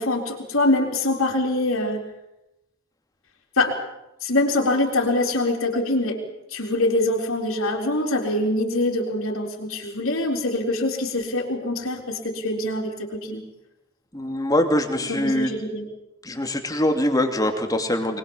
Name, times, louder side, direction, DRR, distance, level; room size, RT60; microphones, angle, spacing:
voice 1, 0.0-2.0 3.6-3.8 4.2-13.4 15.1-15.9, left 2 dB, 70° left, -2 dB, 4.1 m, -24 dB
voice 2, 14.1-15.5 16.2-18.2, left 1 dB, 15° left, 5 dB, 2.6 m, -23 dB
24.5 x 20.5 x 7.3 m, 0.90 s
head